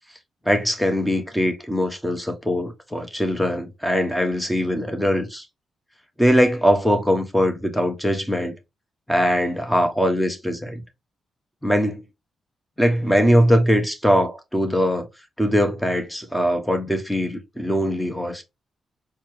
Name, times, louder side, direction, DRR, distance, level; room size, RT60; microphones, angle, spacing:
voice 1, 0.4-5.4 6.2-8.5 9.1-10.8 11.6-12.0 12.8-15.1 15.4-18.4, equal, 5° left, 1.1 m, -21 dB
4.2 x 2.2 x 3.2 m
hypercardioid pair, 40°, 0 cm